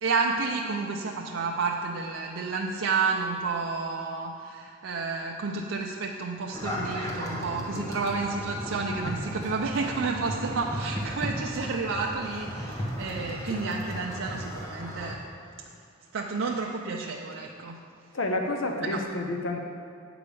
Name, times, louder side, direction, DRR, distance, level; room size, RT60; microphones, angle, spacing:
voice 1, 0.0-15.3 16.1-17.8 18.9-19.0, right 4 dB, 65° right, 0 dB, 0.5 m, -30 dB
sound 1, 6.5-15.1, equal, 15° left, 1.1 m, -35 dB
voice 2, 18.1-19.6, left 2 dB, 70° left, 3 dB, 0.7 m, -30 dB
8.5 x 5.0 x 6.8 m, 2.4 s
head